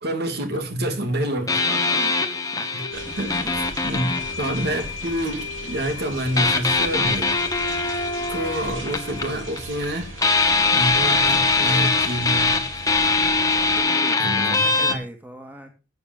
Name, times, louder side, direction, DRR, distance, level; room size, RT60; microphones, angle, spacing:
voice 1, 0.0-1.6 2.7-7.4 7.8-7.9 8.3-10.1 10.7-12.7 14.2-15.0, right 1 dB, 55° right, 2.5 m, -28 dB
sound 1, 0.5-0.6 1.5-13.1, left 7 dB, 90° left, 1.8 m, -38 dB
sound 2, 1.5-5.3 6.4-9.9 10.2-15.0, left 3 dB, 20° left, 1.4 m, -22 dB
voice 2, 1.5-2.3 2.5-2.7 3.1-3.6 4.3-4.8 13.8-15.7, equal, 10° right, 2.3 m, -39 dB
sound 3, 2.9-13.8, right 2 dB, 80° right, 3.1 m, -38 dB
11.5 x 8.1 x 5.3 m
head